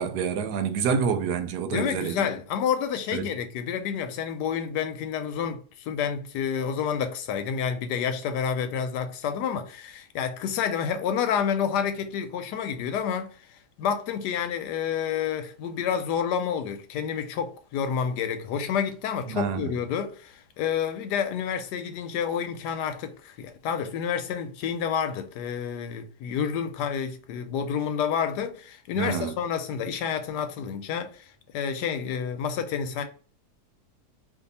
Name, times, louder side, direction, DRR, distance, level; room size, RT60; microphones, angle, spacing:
voice 1, 0.0-2.2 3.1-3.2 19.3-19.7 29.0-29.3, right 6 dB, 80° right, 1.1 m, -27 dB
voice 2, 1.7-13.5 13.8-33.0, left 7 dB, 90° left, 1.2 m, -29 dB
2.6 x 2.6 x 4.0 m
omnidirectional pair, 1.7 m